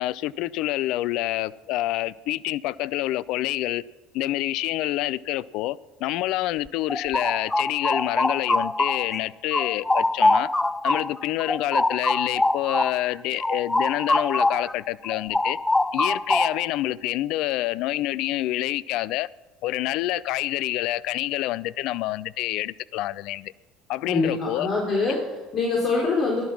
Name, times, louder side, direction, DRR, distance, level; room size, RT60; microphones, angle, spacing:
voice 1, 0.0-3.8 4.1-10.5 10.8-15.6 15.9-19.3 19.6-23.5 23.9-24.7, left 15 dB, 60° left, 0.4 m, -27 dB
sound 1, 6.7-9.2 9.5-14.7 15.0-16.8, left 2 dB, 10° left, 0.5 m, -24 dB
voice 2, 24.1-26.5, left 3 dB, 45° left, 3.8 m, -24 dB
17.0 x 11.5 x 6.0 m
figure-of-eight pair, 65°, 0 cm